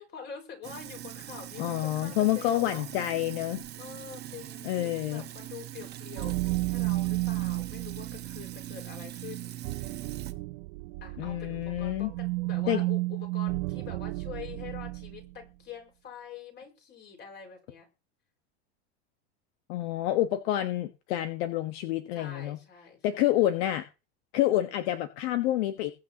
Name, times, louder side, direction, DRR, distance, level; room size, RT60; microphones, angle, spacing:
voice 1, 0.0-2.9 3.8-10.0 11.0-17.9 22.1-23.2, left 7 dB, 30° left, 3 dB, 5.2 m, -45 dB
Sink (filling or washing), 0.6-10.3, right 12 dB, 30° right, 1.1 m, -42 dB
voice 2, 1.6-3.6 4.6-5.2 11.2-12.1 12.7-12.8 19.7-22.6 23.0-23.8 24.3-25.9, left 13 dB, 65° left, 8 dB, 1.3 m, -28 dB
sound 1, 6.2-15.3, right 21 dB, 65° right, 0.5 m, -33 dB
22.0 x 8.8 x 2.9 m, 0.30 s
supercardioid pair, 150°, 35 cm